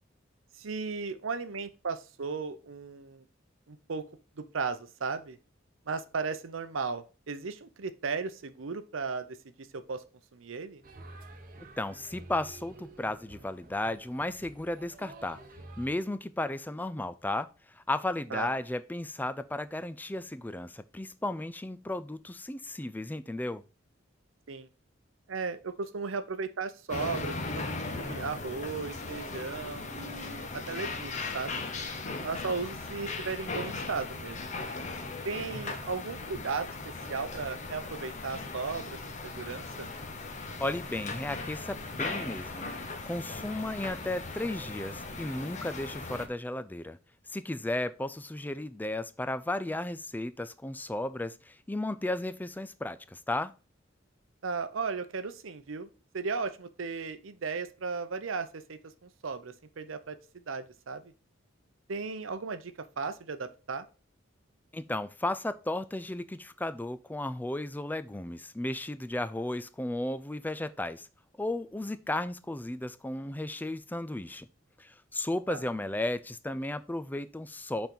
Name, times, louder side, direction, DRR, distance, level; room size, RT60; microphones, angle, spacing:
voice 1, 0.6-3.2 3.7-4.0 4.4-5.4 5.9-10.0 10.3-10.8 18.3-18.5 24.5-24.7 25.3-31.6 32.2-34.4 35.2-39.9 54.4-55.9 56.1-60.2 60.5-61.0 61.9-63.8 75.5-75.6, right 4 dB, 80° right, 0.7 m, -36 dB
sound 1, 10.8-15.9, right 2 dB, 45° right, 1.0 m, -49 dB
voice 2, 11.8-15.4 15.8-17.5 17.7-23.6 40.6-42.7 43.1-47.0 47.3-53.5 64.7-71.1 71.4-74.5 74.8-77.9, left 1 dB, 10° left, 0.4 m, -34 dB
sound 2, 26.9-46.3, left 3 dB, 35° left, 0.9 m, -38 dB
5.8 x 4.3 x 5.2 m
head